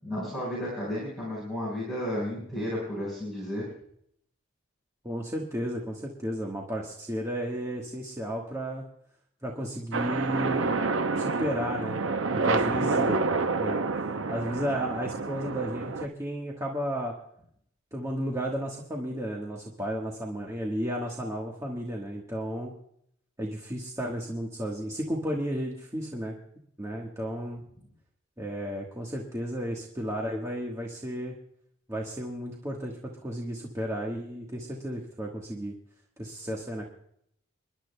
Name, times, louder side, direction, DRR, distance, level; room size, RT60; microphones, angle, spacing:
voice 1, 0.0-3.7, left 1 dB, ahead, -8 dB, 4.8 m, -33 dB
voice 2, 5.0-8.8 9.4-10.7 11.2-12.0 12.3-13.9 14.3-17.1 17.9-22.7 23.4-26.4 26.8-27.6 28.4-31.4 31.9-35.7 36.2-36.9, equal, 15° right, -2 dB, 1.4 m, -33 dB
sound 1, 9.9-16.1, right 3 dB, 70° right, 0.7 m, -28 dB
28.0 x 11.5 x 2.2 m, 0.69 s
head